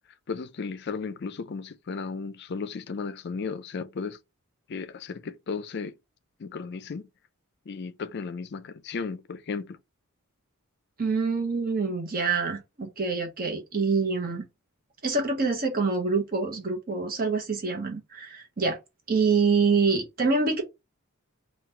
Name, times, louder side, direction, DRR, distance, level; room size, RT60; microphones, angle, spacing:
voice 1, 0.3-4.2 4.7-5.9 6.4-7.1 7.7-9.8, left 5 dB, 50° left, 0.4 m, -35 dB
voice 2, 11.0-14.4 15.0-18.8 19.1-20.6, right 4 dB, 40° right, 0.9 m, -26 dB
3.9 x 2.4 x 4.4 m
head